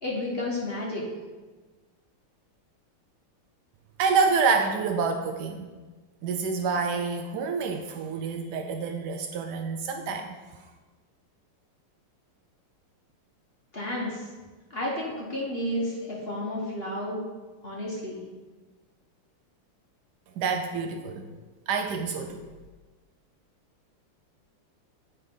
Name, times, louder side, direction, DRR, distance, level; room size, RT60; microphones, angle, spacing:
voice 1, 0.0-1.0 13.7-14.3 14.7-17.2 17.6-18.2, left 1 dB, 35° left, -4 dB, 1.1 m, -31 dB
voice 2, 4.0-5.7 6.2-10.4 20.4-21.3 21.7-22.4, right 5 dB, 85° right, 5 dB, 0.9 m, -27 dB
8.3 x 3.3 x 5.2 m, 1.3 s
omnidirectional pair, 2.3 m